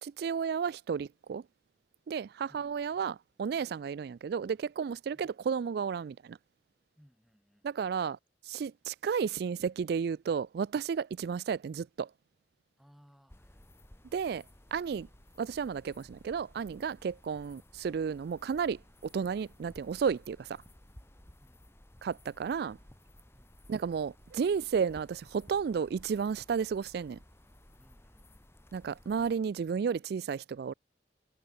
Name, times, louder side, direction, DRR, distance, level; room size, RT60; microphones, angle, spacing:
voice 1, 0.0-1.4 2.1-6.4 7.6-8.2 8.4-12.1 14.1-14.4 14.7-15.1 15.4-20.6 22.0-22.8 23.7-27.2 28.7-30.7, right 6 dB, 60° right, 0.3 m, -33 dB
voice 2, 6.9-7.9 12.8-14.1 21.4-21.7 23.3-23.6 27.8-28.5, equal, ahead, 6.9 m, -64 dB
sound 1, 13.3-29.3, left 1 dB, 15° left, 1.8 m, -57 dB
head